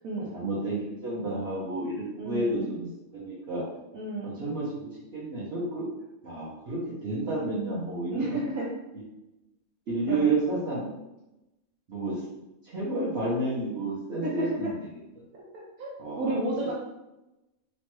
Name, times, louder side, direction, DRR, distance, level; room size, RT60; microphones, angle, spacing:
voice 1, 0.3-2.9 3.1-3.6 4.2-5.9 6.2-8.4 9.9-11.0 11.9-12.2 12.6-14.7 16.0-16.3 16.6-16.7, right 2 dB, 55° right, -8 dB, 0.8 m, -30 dB
voice 2, 2.2-2.6 3.9-4.4 8.1-8.7 10.1-10.3 14.2-14.7 15.5-16.7, right 2 dB, 80° right, -5 dB, 1.1 m, -32 dB
3.0 x 2.2 x 3.0 m, 0.96 s
omnidirectional pair, 1.5 m